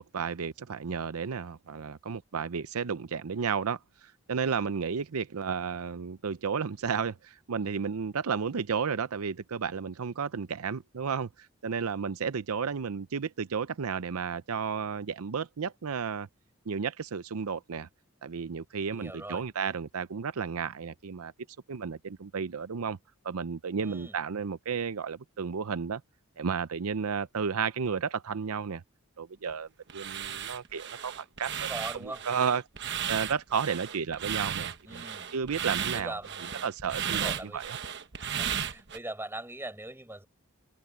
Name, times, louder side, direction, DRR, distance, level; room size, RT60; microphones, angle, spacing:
voice 1, 0.0-16.3 16.7-17.9 18.2-21.3 21.7-23.0 23.2-26.0 26.4-28.8 29.2-31.7 32.0-35.0 35.3-36.2 36.6-37.8, right 6 dB, 85° right, 0.6 m, -33 dB
voice 2, 18.9-19.4 23.8-24.1 31.5-32.2 34.9-35.3 35.9-36.7 37.1-37.6 38.2-40.3, right 1 dB, 10° right, 7.5 m, -41 dB
sound 1, 29.9-39.0, right 8 dB, 55° right, 1.1 m, -35 dB
head